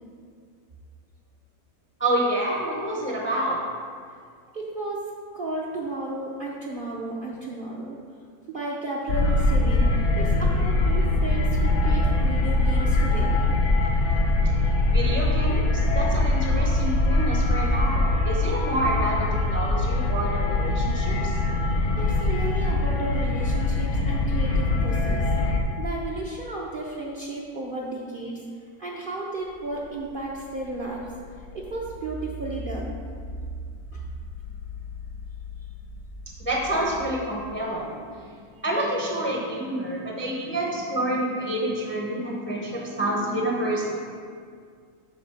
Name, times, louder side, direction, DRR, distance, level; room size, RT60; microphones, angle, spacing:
voice 1, 2.0-3.6 14.9-21.3 36.4-38.0 38.6-44.0, right 1 dB, 10° left, -2 dB, 0.5 m, -28 dB
voice 2, 4.5-5.0 5.3-8.0 8.5-13.5 22.0-25.3 25.8-28.4 28.8-33.0 33.9-34.0, right 2 dB, 50° right, -4 dB, 0.7 m, -33 dB
sound 1, 9.1-25.6, left 2 dB, 60° left, 1.0 m, -22 dB
sound 2, 29.4-38.2, left 1 dB, 90° left, 1.5 m, -40 dB
6.8 x 4.0 x 5.8 m, 2.1 s
omnidirectional pair, 1.6 m